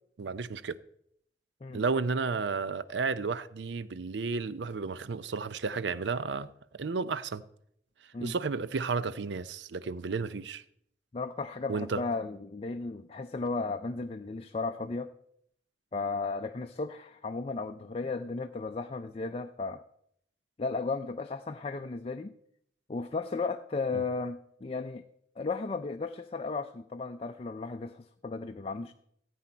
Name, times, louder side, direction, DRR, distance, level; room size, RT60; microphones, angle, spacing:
voice 1, 0.2-0.8 1.7-6.5 6.8-7.4 8.2-10.6 11.7-12.0 23.9-24.0, right 4 dB, 75° right, 0.6 m, -32 dB
voice 2, 11.1-15.1 15.9-19.8 20.6-22.3 22.9-25.0 25.4-28.9, left 3 dB, 30° left, 0.4 m, -35 dB
15.0 x 8.5 x 4.4 m
head